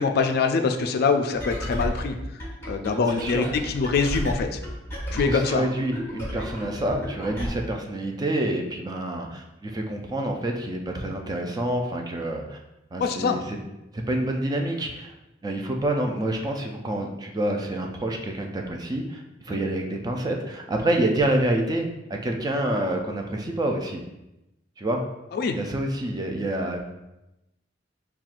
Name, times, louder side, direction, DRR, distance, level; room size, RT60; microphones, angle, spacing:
voice 1, 0.0-2.2 2.7-4.6 5.1-5.7 13.0-13.4 19.5-19.6 25.3-25.6, left 4 dB, 55° left, 6 dB, 0.3 m, -24 dB
sound 1, 1.3-7.5, equal, 15° left, 1.3 m, -33 dB
voice 2, 3.0-3.5 5.1-12.6 12.9-13.6 13.9-15.1 15.4-24.0 24.8-25.0 25.5-26.8, right 1 dB, 20° right, 2 dB, 0.4 m, -27 dB
5.7 x 2.3 x 2.4 m, 0.93 s
head